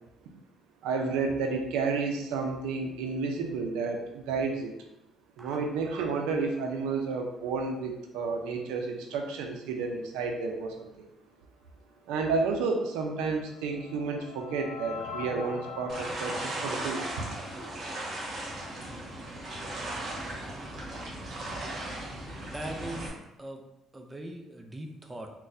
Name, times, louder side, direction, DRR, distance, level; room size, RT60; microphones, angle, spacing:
voice 1, 0.8-4.7 5.4-11.1 12.1-17.3, right 4 dB, 90° right, 2 dB, 0.4 m, -31 dB
sound 1, 13.0-18.2, left 5 dB, 75° left, 0.4 m, -43 dB
sound 2, 15.9-23.1, right 1 dB, 45° right, 1.2 m, -37 dB
voice 2, 22.4-23.1 23.4-23.6 23.9-25.3, right 1 dB, 15° right, 3 dB, 0.5 m, -40 dB
3.9 x 2.1 x 2.6 m, 0.87 s
cardioid pair, 85°, 0 cm